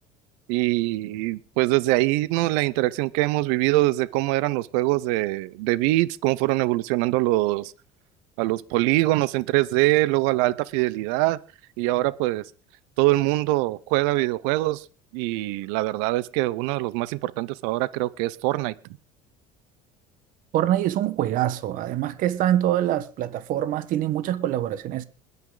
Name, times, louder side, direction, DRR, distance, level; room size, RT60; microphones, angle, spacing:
voice 1, 0.5-7.7 8.4-11.4 11.8-12.4 13.0-14.8 15.1-18.7, right 19 dB, 85° right, 0.8 m, -23 dB
voice 2, 20.5-25.0, right 12 dB, 60° right, 1.3 m, -24 dB
21.0 x 9.5 x 3.9 m
cardioid pair, 115°, 16 cm